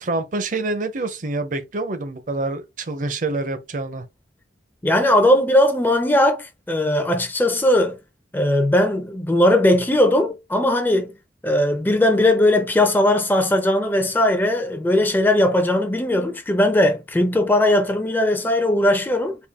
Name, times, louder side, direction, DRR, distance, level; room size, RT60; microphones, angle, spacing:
voice 1, 0.0-4.0, right 2 dB, 45° right, 0.6 m, -26 dB
voice 2, 4.8-8.0 8.3-11.1 11.4-19.4, left 1 dB, 10° left, 0.4 m, -18 dB
3.7 x 2.3 x 3.5 m
head